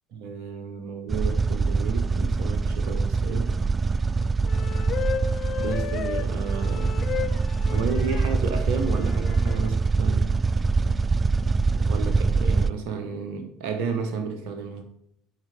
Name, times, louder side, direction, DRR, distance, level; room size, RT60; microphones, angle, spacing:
voice 1, 0.1-3.5 5.6-6.9 7.7-10.4 11.7-14.8, right 5 dB, 65° right, 5 dB, 1.2 m, -32 dB
sound 1, 1.1-12.7, right 4 dB, 30° right, 0.3 m, -24 dB
sound 2, 4.4-8.3 9.1-9.7, left 8 dB, 50° left, 0.5 m, -33 dB
7.9 x 4.4 x 5.1 m, 0.73 s
hypercardioid pair, 65°, 0 cm